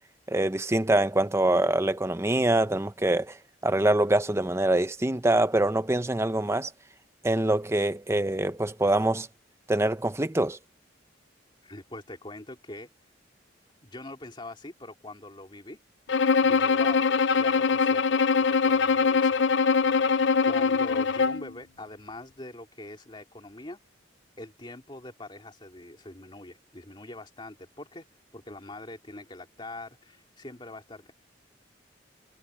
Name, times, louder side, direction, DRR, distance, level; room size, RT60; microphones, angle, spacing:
voice 1, 0.3-3.4 3.6-6.7 7.2-9.3 9.7-10.6, right 1 dB, 15° right, 0.7 m, -24 dB
voice 2, 11.6-12.9 13.8-15.8 16.4-17.1 17.3-20.0 20.5-23.8 24.4-28.0 28.3-31.1, left 2 dB, 25° left, 2.9 m, -43 dB
Bowed string instrument, 16.1-21.5, left 5 dB, 70° left, 0.6 m, -23 dB
head